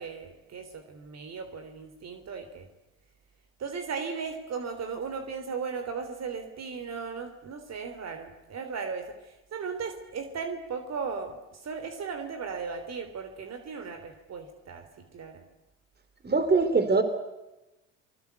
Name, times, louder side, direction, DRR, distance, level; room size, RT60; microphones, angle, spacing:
voice 1, 0.0-2.7 3.6-15.4, right 5 dB, 50° right, 7 dB, 3.6 m, -37 dB
voice 2, 16.2-17.0, right 4 dB, 30° right, 10 dB, 4.0 m, -22 dB
28.0 x 21.0 x 8.3 m, 0.99 s
supercardioid pair, 85°, 35 cm